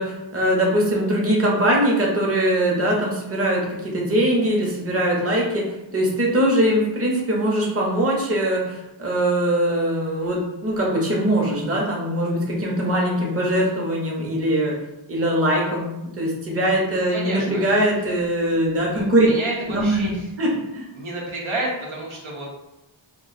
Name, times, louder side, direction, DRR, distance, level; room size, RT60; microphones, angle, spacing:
voice 1, 0.0-5.6 5.9-14.8 15.1-19.3 19.7-20.9, right 1 dB, 30° right, -2 dB, 0.8 m, -21 dB
voice 2, 16.9-17.7 18.9-20.3 20.9-22.5, right 2 dB, 80° right, -4 dB, 1.0 m, -30 dB
2.4 x 2.3 x 4.0 m, 0.94 s
wide cardioid pair, 45°, 48 cm